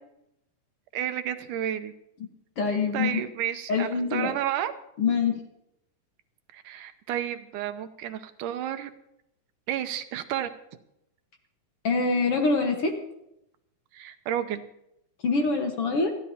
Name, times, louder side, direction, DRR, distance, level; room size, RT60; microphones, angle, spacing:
voice 1, 0.9-1.9 2.9-4.7 6.5-8.9 9.7-10.5 13.9-14.7, right 11 dB, 75° right, 9 dB, 2.2 m, -31 dB
voice 2, 2.6-3.2 3.7-4.3 5.0-5.4 11.8-12.9 15.2-16.1, left 4 dB, 55° left, 3 dB, 1.9 m, -25 dB
28.0 x 11.5 x 2.8 m, 0.82 s
omnidirectional pair, 3.8 m